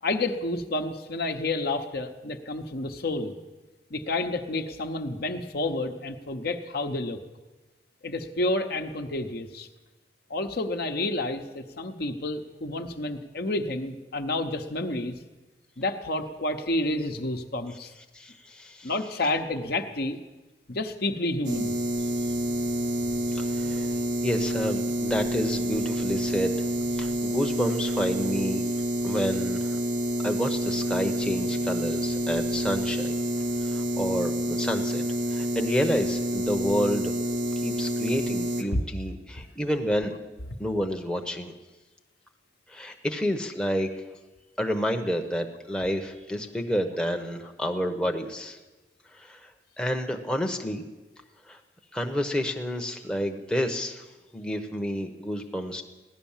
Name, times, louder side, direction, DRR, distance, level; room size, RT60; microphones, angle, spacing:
voice 1, 0.0-3.3 3.9-7.2 8.0-9.7 10.3-15.2 15.8-17.9 18.8-20.2 20.7-21.7 38.7-38.8, left 2 dB, 55° left, 6 dB, 1.0 m, -30 dB
voice 2, 18.1-18.9 23.3-24.0 24.2-26.7 27.0-28.7 29.0-29.8 30.2-33.2 33.6-37.1 37.6-40.1 40.6-41.5 42.7-44.0 44.6-48.6 49.1-49.5 49.8-50.8 51.5-51.6 51.9-54.0 54.3-55.8, equal, 5° left, 3 dB, 0.9 m, -29 dB
sound 1, 21.4-38.6, equal, 80° right, 1.2 m, -28 dB
16.5 x 11.0 x 7.3 m, 1.2 s
head